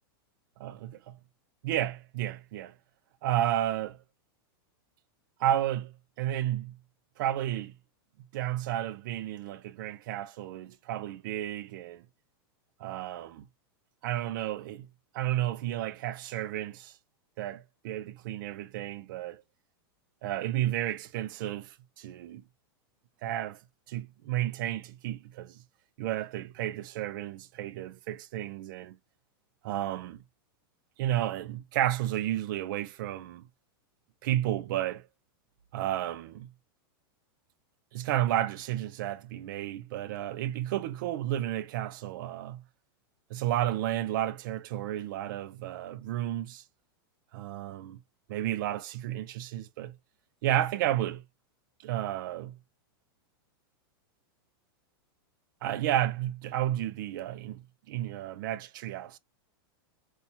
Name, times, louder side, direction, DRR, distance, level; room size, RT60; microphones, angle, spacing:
voice 1, 0.6-1.2 1.6-2.7 3.2-4.0 5.4-6.8 7.2-7.7 8.3-12.0 12.8-13.4 14.0-14.9 15.1-17.0 17.4-19.4 20.2-22.4 23.2-23.6 23.9-25.6 26.0-29.0 29.6-30.2 31.0-33.5 34.2-35.1 35.7-36.5 37.9-42.6 43.3-46.6 47.3-48.0 48.3-50.0 50.4-51.2 51.8-52.6 55.6-59.2, right 12 dB, 55° right, 0.5 m, -32 dB
4.2 x 2.3 x 2.6 m
supercardioid pair, 160°, 13 cm